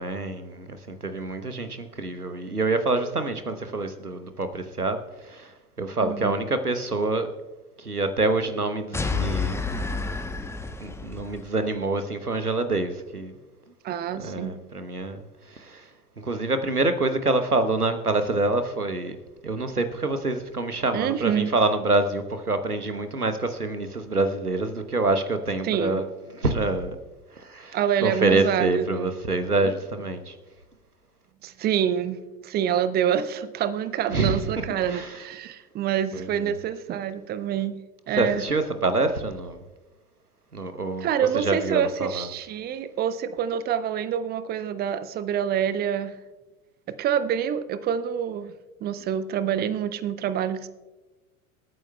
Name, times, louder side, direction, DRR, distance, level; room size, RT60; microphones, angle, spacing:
voice 1, 0.0-7.3 7.8-9.6 10.8-13.3 14.2-15.9 16.2-19.2 19.4-27.0 27.3-30.4 34.1-35.3 36.1-36.6 38.1-39.6 40.5-42.3, right 2 dB, 90° right, 9 dB, 1.0 m, -26 dB
voice 2, 6.0-6.4 13.8-14.6 20.9-21.5 25.6-26.0 27.7-29.1 31.4-37.8 38.1-38.4 41.0-46.2 47.0-48.5 48.8-50.7, right 9 dB, 20° right, 13 dB, 0.6 m, -27 dB
sound 1, 8.9-11.5, left 4 dB, 5° left, 0.9 m, -29 dB
26.5 x 9.0 x 2.3 m, 1.2 s
figure-of-eight pair, 80°, 44 cm